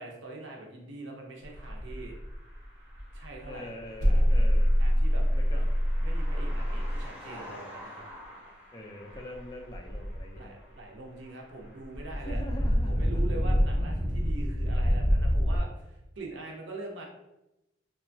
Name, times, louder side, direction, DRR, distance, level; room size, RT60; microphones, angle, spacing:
voice 1, 0.0-2.2 3.1-3.7 4.8-5.2 5.5-5.6 6.0-8.0 10.4-12.4 12.8-17.1, right 2 dB, 60° right, 0 dB, 0.6 m, -43 dB
sound 1, 1.4-3.6 4.4-10.4 11.9-15.6, equal, 10° right, 0.7 m, -30 dB
voice 2, 3.5-4.8 5.3-5.7 8.7-10.6 12.2-13.2, left 1 dB, 20° left, 1 dB, 0.3 m, -43 dB
sound 2, 4.0-7.1, equal, 85° right, 0.9 m, -24 dB
2.9 x 2.2 x 2.6 m, 0.92 s
head